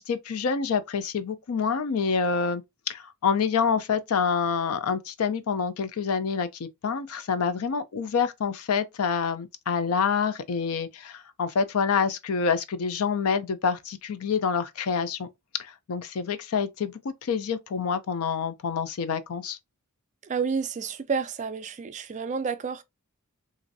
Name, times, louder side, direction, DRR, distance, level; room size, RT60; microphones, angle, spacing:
voice 1, 0.0-15.3 15.6-19.6, left 6 dB, 70° left, 0.4 m, -27 dB
voice 2, 20.2-22.8, right 5 dB, 35° right, 0.3 m, -30 dB
3.0 x 2.5 x 2.6 m
head